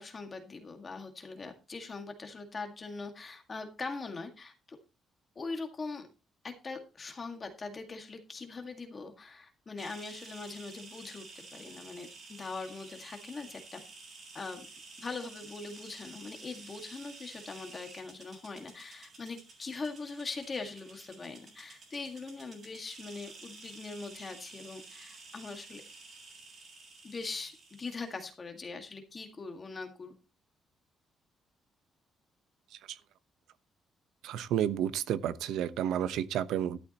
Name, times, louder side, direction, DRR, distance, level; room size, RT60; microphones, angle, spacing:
voice 1, 0.0-4.5 5.4-6.1 6.4-13.8 14.3-14.7 15.0-25.8 27.0-30.1, left 4 dB, 25° left, 1.9 m, -42 dB
sound 1, 9.8-28.2, right 3 dB, 40° right, 7.8 m, -51 dB
voice 2, 34.2-36.8, right 10 dB, 85° right, 0.9 m, -31 dB
13.0 x 12.0 x 2.9 m
cardioid pair, 165°, 0 cm